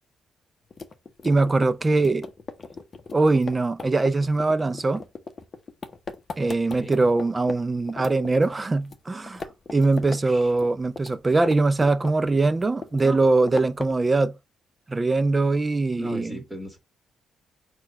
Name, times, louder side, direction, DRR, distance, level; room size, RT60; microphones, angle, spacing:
sound 1, 0.7-7.6 7.9-9.0 9.3-10.2 10.5-12.3 12.6-14.0, left 4 dB, 35° left, 0.8 m, -38 dB
voice 1, 1.2-2.3 3.1-5.0 6.4-9.4 9.7-14.3 14.9-16.4, right 3 dB, 25° right, 0.4 m, -22 dB
voice 2, 6.7-7.1 10.1-10.5 13.0-13.2 15.9-16.8, equal, 5° right, 1.7 m, -38 dB
4.4 x 2.3 x 4.5 m
cardioid pair, 90°, 0 cm